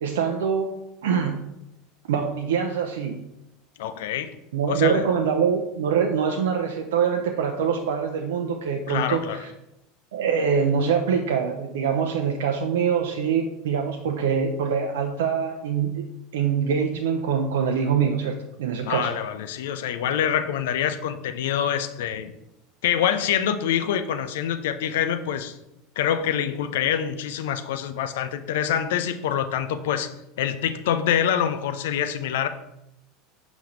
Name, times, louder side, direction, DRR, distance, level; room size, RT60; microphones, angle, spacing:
voice 1, 0.0-1.5 2.1-3.2 4.5-9.5 10.1-16.0 16.3-19.1, right 6 dB, 70° right, 3 dB, 0.6 m, -24 dB
voice 2, 3.8-4.4 4.7-5.1 8.9-9.4 18.8-22.3 22.8-25.6 26.0-32.5, left 9 dB, 65° left, 10 dB, 0.5 m, -25 dB
7.2 x 5.6 x 3.3 m, 0.87 s
figure-of-eight pair, 80°, 0 cm